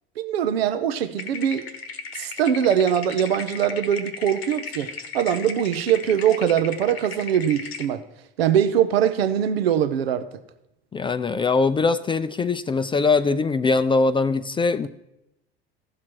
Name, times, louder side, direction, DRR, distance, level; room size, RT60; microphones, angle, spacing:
voice 1, 0.2-1.7 2.2-4.9 5.1-8.0 8.4-10.3, right 9 dB, 85° right, 0.6 m, -22 dB
sound 1, 1.2-7.9, left 5 dB, 90° left, 1.1 m, -36 dB
voice 2, 10.9-14.9, left 4 dB, 15° left, 0.4 m, -22 dB
15.0 x 6.0 x 4.6 m
hypercardioid pair, 80°, 30 cm